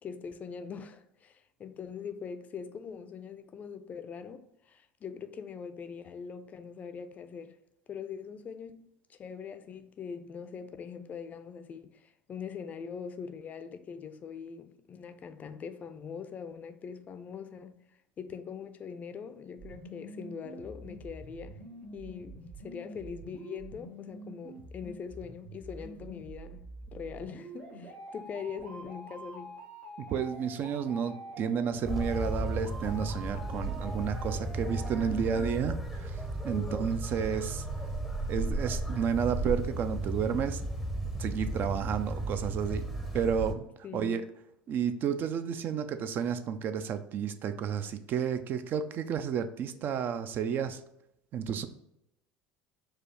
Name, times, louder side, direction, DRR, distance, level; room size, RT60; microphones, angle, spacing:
voice 1, 0.0-7.6 7.9-21.6 21.9-29.6 36.5-36.9 43.8-44.2, left 6 dB, 35° left, 0.4 m, -42 dB
sound 1, 19.6-35.6, right 1 dB, 80° right, 1.1 m, -46 dB
voice 2, 30.0-37.6 38.3-40.6 41.2-42.8 43.1-43.6 43.9-44.3 44.7-50.8 51.3-51.7, right 7 dB, 50° right, 0.4 m, -31 dB
sound 2, 31.8-43.5, right 1 dB, 5° right, 0.6 m, -34 dB
4.7 x 2.3 x 3.0 m
supercardioid pair, 90°, 4 cm